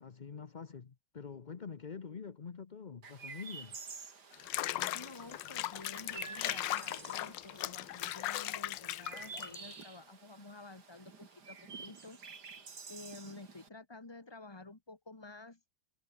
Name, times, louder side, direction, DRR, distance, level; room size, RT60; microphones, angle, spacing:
voice 1, 0.0-3.8, left 6 dB, 40° left, 0.6 m, -46 dB
Chirp tweet, 3.0-13.7, right 5 dB, 55° right, 3.1 m, -50 dB
Water / Bathtub (filling or washing), 4.3-9.8, left 14 dB, 75° left, 1.4 m, -38 dB
voice 2, 4.9-12.2 12.9-15.6, left 3 dB, 15° left, 1.4 m, -51 dB
omnidirectional pair, 2.1 m